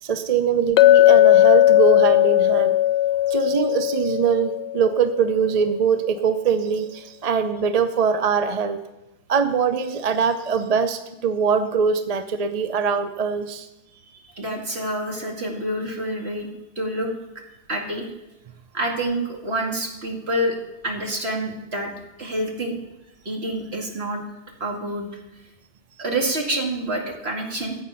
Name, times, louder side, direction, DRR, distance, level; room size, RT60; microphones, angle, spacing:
voice 1, 0.0-2.8 3.3-8.8 9.3-13.7, right 6 dB, 40° right, 9 dB, 0.6 m, -22 dB
Chink clink, 0.8-4.9, left 13 dB, 75° left, 0.8 m, -16 dB
voice 2, 13.9-16.5 16.8-17.1 17.7-18.0 18.7-20.6 20.8-21.9 22.2-22.8 23.2-24.2 24.6-25.1 26.0-27.8, right 1 dB, 65° right, 1 dB, 2.3 m, -27 dB
14.5 x 8.0 x 5.6 m, 0.95 s
omnidirectional pair, 1.2 m